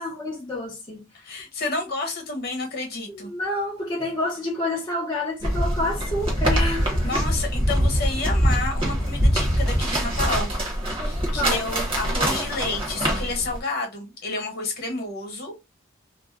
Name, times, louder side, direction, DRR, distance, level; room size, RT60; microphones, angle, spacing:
voice 1, 0.0-1.3 3.1-7.2 9.9-10.1 11.3-11.6, left 1 dB, 20° left, 0.6 m, -29 dB
voice 2, 1.2-3.3 7.0-10.5 11.0-15.5, left 3 dB, 45° left, 1.1 m, -30 dB
sound 1, 5.4-13.6, equal, 25° right, 0.9 m, -24 dB
2.6 x 2.1 x 3.5 m
head